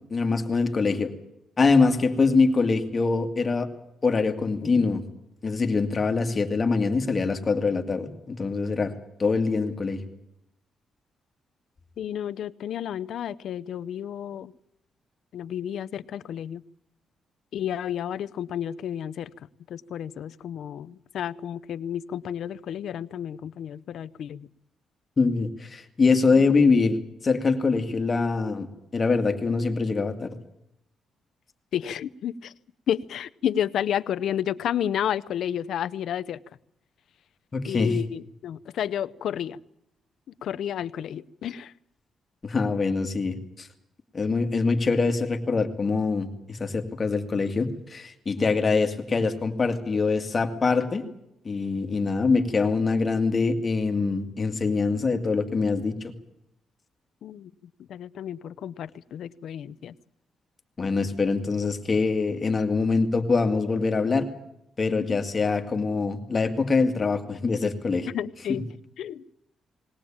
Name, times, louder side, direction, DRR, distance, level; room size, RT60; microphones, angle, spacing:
voice 1, 0.1-1.1 1.6-3.7 4.0-5.0 5.4-8.9 9.2-10.0 25.2-28.7 28.9-30.4 37.5-38.0 42.4-43.7 44.1-51.0 51.4-56.1 60.8-64.3 64.8-68.1 68.5-68.6, left 4 dB, 30° left, 6 dB, 2.1 m, -24 dB
voice 2, 12.0-14.5 15.3-16.6 17.5-19.3 19.7-24.5 31.7-32.5 32.9-36.4 37.7-39.6 40.4-41.7 48.4-48.7 57.2-57.5 57.9-59.9 64.9-65.2 68.1-68.6 69.0-69.2, left 10 dB, 70° left, 14 dB, 0.7 m, -31 dB
20.0 x 18.5 x 8.7 m, 0.80 s
cardioid pair, 140°, 0 cm